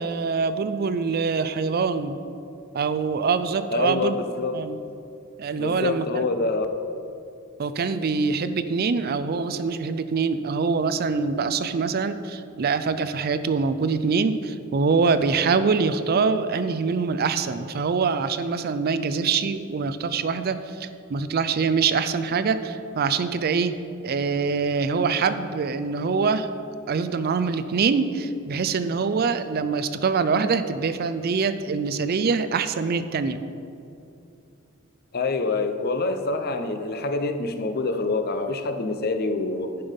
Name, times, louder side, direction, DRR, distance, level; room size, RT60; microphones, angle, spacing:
voice 1, 0.0-2.2 2.7-4.2 4.5-4.8 5.4-6.2 7.6-23.7 24.0-26.5 26.9-33.4, right 5 dB, 45° right, 12 dB, 0.4 m, -24 dB
voice 2, 3.7-4.6 5.5-6.7 35.1-39.7, left 3 dB, 45° left, 8 dB, 0.6 m, -26 dB
11.0 x 5.5 x 5.2 m, 2.6 s
head